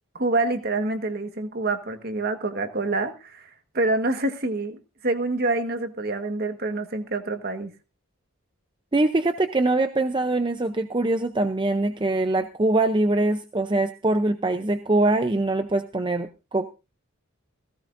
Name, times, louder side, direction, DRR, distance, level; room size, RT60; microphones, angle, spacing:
voice 1, 0.1-3.5 3.7-7.7, right 2 dB, 45° right, 7 dB, 1.5 m, -26 dB
voice 2, 8.9-16.7, right 2 dB, 20° right, 8 dB, 0.6 m, -23 dB
16.5 x 16.5 x 2.6 m, 0.29 s
head